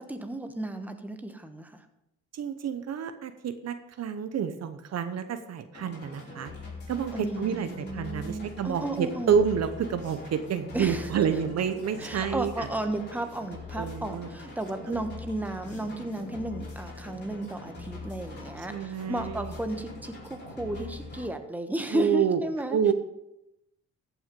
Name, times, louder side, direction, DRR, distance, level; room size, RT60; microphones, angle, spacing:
voice 1, 0.1-1.8 7.1-9.4 10.7-11.1 12.0-22.9, right 1 dB, 5° right, 7 dB, 1.2 m, -34 dB
voice 2, 2.3-6.5 6.9-12.7 13.7-14.3 14.9-15.0 18.7-19.5 21.9-22.4 22.7-22.9, right 7 dB, 60° right, 10 dB, 0.9 m, -29 dB
sound 1, 5.7-21.3, left 3 dB, 35° left, 4.6 m, -42 dB
14.0 x 6.0 x 5.3 m, 0.86 s
cardioid pair, 90°, 30 cm